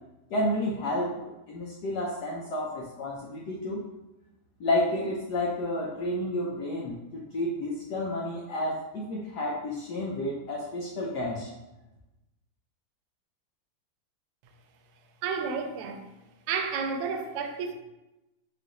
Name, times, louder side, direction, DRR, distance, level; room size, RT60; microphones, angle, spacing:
voice 1, 0.3-1.1 1.5-3.8 4.6-11.5, left 1 dB, 90° left, -3 dB, 0.9 m, -30 dB
voice 2, 15.2-16.0 16.5-17.7, right 5 dB, 90° right, 5 dB, 1.5 m, -31 dB
4.6 x 2.5 x 3.8 m, 0.97 s
omnidirectional pair, 2.4 m